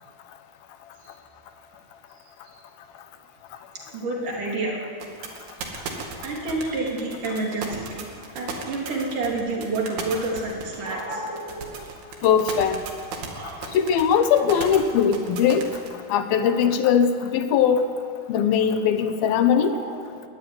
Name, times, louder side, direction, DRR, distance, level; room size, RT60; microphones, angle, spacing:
voice 1, 3.9-4.8 6.2-8.1 8.3-11.9 13.2-13.8 16.3-16.5 19.7-20.2, right 2 dB, 55° right, -2 dB, 4.7 m, -29 dB
sound 1, 5.0-15.9, right 6 dB, 90° right, 4.2 m, -35 dB
voice 2, 12.2-12.8 13.7-15.6 16.1-17.9 18.3-19.8, left 7 dB, 75° left, 8 dB, 2.8 m, -20 dB
22.5 x 14.5 x 9.7 m, 2.2 s
omnidirectional pair, 4.4 m